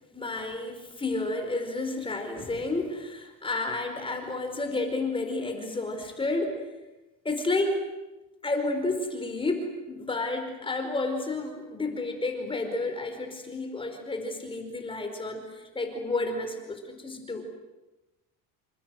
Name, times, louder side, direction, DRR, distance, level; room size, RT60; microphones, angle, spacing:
voice 1, 0.1-6.6 7.2-7.8 8.4-17.4, left 2 dB, 15° left, 5 dB, 4.9 m, -31 dB
28.0 x 27.0 x 7.9 m, 1.1 s
cardioid pair, 150°, 34 cm